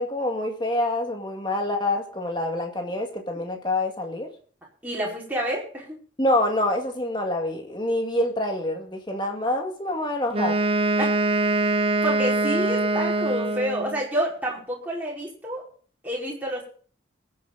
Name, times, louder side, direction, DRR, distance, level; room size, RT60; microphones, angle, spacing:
voice 1, 0.0-4.3 6.2-10.6, left 1 dB, 25° left, 3 dB, 2.1 m, -26 dB
voice 2, 4.8-6.0 11.0-11.2 12.0-15.6 16.0-16.7, equal, 10° right, -5 dB, 5.0 m, -28 dB
Wind instrument woodwind instrument, 10.3-14.0, right 2 dB, 30° right, 0.9 m, -23 dB
21.5 x 8.5 x 4.1 m, 0.43 s
head